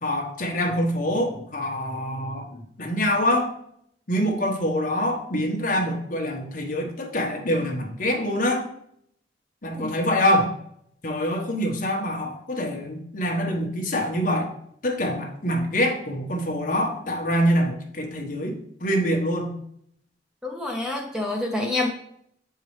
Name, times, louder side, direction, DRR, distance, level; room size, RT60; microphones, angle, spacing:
voice 1, 0.0-3.5 4.1-8.7 9.6-10.5 11.0-14.5 14.8-19.5, equal, 45° left, 1 dB, 1.1 m, -25 dB
voice 2, 20.4-21.9, left 2 dB, 5° right, 1 dB, 0.6 m, -27 dB
7.4 x 4.7 x 3.1 m, 0.70 s
head